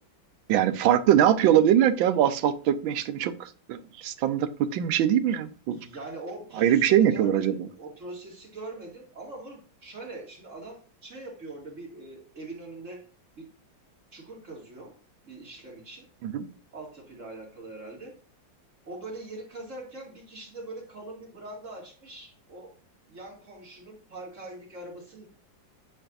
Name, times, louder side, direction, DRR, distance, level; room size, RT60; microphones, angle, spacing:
voice 1, 0.5-5.8 6.6-7.7 16.2-16.5, right 10 dB, 90° right, 12 dB, 1.5 m, -22 dB
voice 2, 5.7-13.1 13.4-13.5 14.1-14.9 15.2-16.1 16.7-18.2 18.8-22.7 23.1-25.3, right 2 dB, 40° right, -2 dB, 2.7 m, -42 dB
8.9 x 5.5 x 2.6 m, 0.40 s
omnidirectional pair, 2.1 m